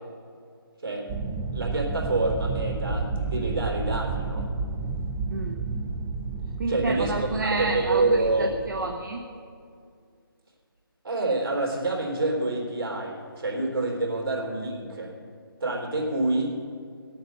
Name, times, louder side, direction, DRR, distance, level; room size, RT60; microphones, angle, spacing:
sound 1, 1.1-9.0, right 4 dB, 10° right, 0.4 m, -31 dB
voice 1, 1.5-4.5 6.7-8.5 11.0-15.1 15.6-16.6, right 2 dB, 70° right, -1 dB, 3.7 m, -27 dB
voice 2, 5.3-5.6 6.6-9.2, right 3 dB, 55° right, 2 dB, 1.0 m, -29 dB
17.0 x 8.6 x 6.6 m, 2.2 s
figure-of-eight pair, 155°, 13 cm